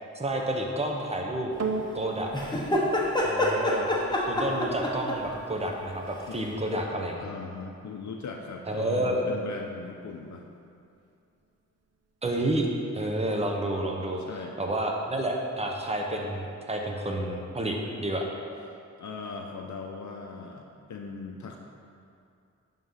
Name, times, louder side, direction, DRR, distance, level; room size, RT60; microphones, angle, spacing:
voice 1, 0.1-1.5 1.9-2.3 3.2-3.9 4.3-7.3 8.7-9.2 12.2-12.7 12.9-14.2 14.6-18.3, right 1 dB, 20° right, 0 dB, 1.0 m, -30 dB
sound 1, 1.6-10.2 10.9-11.0, right 3 dB, 60° right, 0.8 m, -41 dB
sound 2, 2.3-5.3 6.7-6.8, left 1 dB, 15° left, 1.0 m, -27 dB
voice 2, 7.2-10.4 14.2-14.6 18.7-21.6, left 4 dB, 70° left, 2 dB, 0.6 m, -39 dB
11.0 x 3.8 x 5.6 m, 2.5 s
wide cardioid pair, 110°, 30 cm